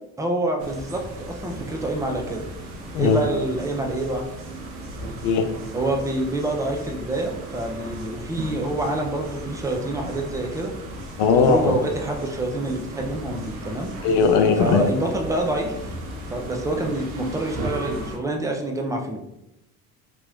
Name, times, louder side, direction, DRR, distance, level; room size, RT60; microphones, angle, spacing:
voice 1, 0.2-2.5 3.0-4.2 5.7-10.7 11.2-13.9 14.6-15.9 16.3-19.2, right 2 dB, 10° right, 1 dB, 0.5 m, -27 dB
sound 1, 0.6-18.2, right 1 dB, 70° right, 0.8 m, -36 dB
voice 2, 2.9-3.3 5.2-5.5 11.2-11.7 14.0-14.9, left 5 dB, 65° left, 6 dB, 0.5 m, -18 dB
2.9 x 2.9 x 2.4 m, 0.86 s
hypercardioid pair, 70°, 42 cm